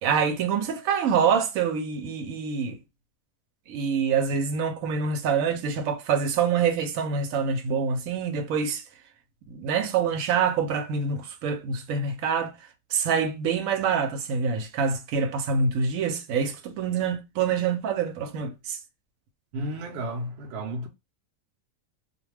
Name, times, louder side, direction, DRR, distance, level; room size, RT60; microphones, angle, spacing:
voice 1, 0.0-2.8 3.7-8.8 9.5-12.5 12.9-18.8, right 6 dB, 85° right, 1.0 m, -26 dB
voice 2, 19.5-20.9, right 1 dB, 65° right, 0.8 m, -32 dB
2.4 x 2.1 x 3.2 m
omnidirectional pair, 1.4 m